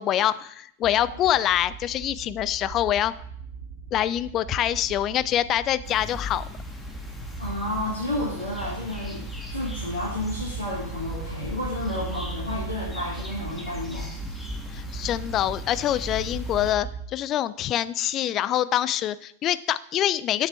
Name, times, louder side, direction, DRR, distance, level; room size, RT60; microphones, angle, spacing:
voice 1, 0.0-3.1 3.9-6.4 14.7-20.5, left 12 dB, 35° left, 17 dB, 0.4 m, -25 dB
sound 1, 0.8-17.0, right 6 dB, 60° right, 2.7 m, -39 dB
sound 2, 5.8-16.7, left 3 dB, 10° left, 1.5 m, -38 dB
voice 2, 7.4-9.2 9.5-14.1, left 1 dB, 75° left, -10 dB, 3.8 m, -31 dB
9.0 x 6.6 x 4.5 m, 0.69 s
figure-of-eight pair, 90°, 0 cm